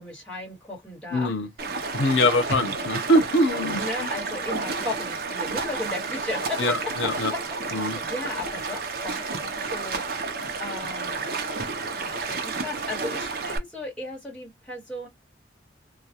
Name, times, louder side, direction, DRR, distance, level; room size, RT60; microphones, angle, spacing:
voice 1, 0.0-1.3 1.8-1.9 3.8-6.6 7.3-7.4 7.7-9.4 9.7-10.0 10.3-11.2 11.9-15.1, left 2 dB, 5° left, 1.2 m, -35 dB
voice 2, 1.1-1.5 1.9-4.1 6.6-7.3 7.7-8.0, left 1 dB, 90° left, 0.7 m, -23 dB
Stream, 1.6-13.6, right 4 dB, 55° right, 0.5 m, -31 dB
2.2 x 2.2 x 2.8 m
head